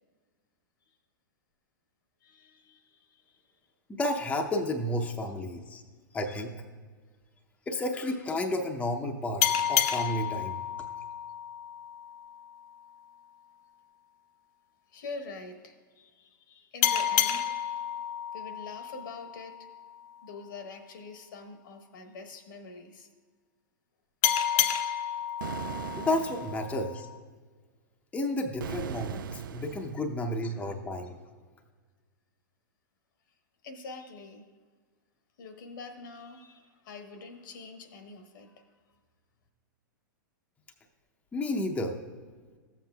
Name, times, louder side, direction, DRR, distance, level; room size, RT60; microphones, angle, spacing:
voice 1, 2.2-3.7 14.9-18.0 18.3-19.7 20.2-23.1 33.6-34.5 35.4-39.0, left 3 dB, 75° left, 6 dB, 1.1 m, -45 dB
voice 2, 3.9-5.8 6.1-6.5 7.7-10.6 25.9-27.1 28.1-31.2 41.3-42.0, left 1 dB, 10° left, 2 dB, 0.6 m, -31 dB
sound 1, 9.4-12.6 16.8-20.0 24.2-27.2, left 10 dB, 55° left, 0.6 m, -30 dB
sound 2, 25.4-26.8 28.6-30.0, right 8 dB, 85° right, 0.4 m, -38 dB
14.0 x 7.5 x 2.3 m, 1.5 s
hypercardioid pair, 120°, 11 cm